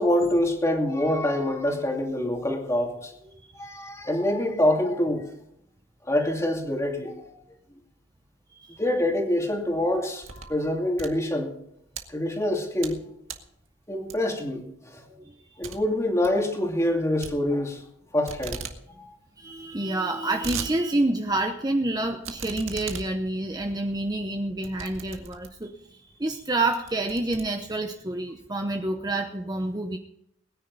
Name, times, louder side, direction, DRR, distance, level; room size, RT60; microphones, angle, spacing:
voice 1, 0.0-3.1 3.6-5.3 6.0-7.3 8.8-11.5 12.1-13.0 13.9-15.0 15.6-17.8 18.1-18.6 19.0-19.2, left 1 dB, 15° left, 1 dB, 2.6 m, -25 dB
sound 1, 9.6-10.6 10.9-12.0 12.5-13.0 13.3-13.5 14.1-14.5 14.8-14.9 15.2-15.3 15.6-15.8 16.1-16.4 17.2-18.0 18.3-18.8 19.1-19.2 19.4-19.5 20.0-20.7 21.2-21.3 22.2-25.7 26.3-26.4 26.7-28.0, right 5 dB, 90° right, 1.9 m, -38 dB
voice 2, 15.0-15.3 19.4-30.0, right 2 dB, 20° right, 4 dB, 0.9 m, -28 dB
22.0 x 10.0 x 4.1 m, 0.76 s
head